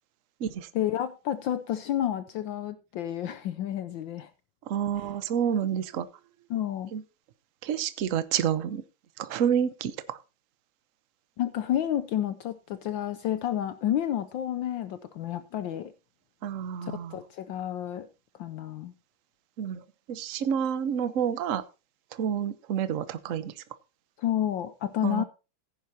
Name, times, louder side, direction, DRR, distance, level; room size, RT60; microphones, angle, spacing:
voice 1, 0.7-4.3 5.0-5.1 6.5-6.9 11.4-15.9 16.8-18.1 18.4-18.9 24.2-25.2, left 11 dB, 70° left, 12 dB, 1.3 m, -30 dB
voice 2, 4.7-6.1 6.9-7.0 7.6-8.8 9.2-10.2 16.4-17.2 19.6-19.8 20.1-21.6 22.1-23.5 25.0-25.2, right 8 dB, 55° right, 14 dB, 0.9 m, -29 dB
15.5 x 10.5 x 2.8 m, 0.30 s
omnidirectional pair, 2.3 m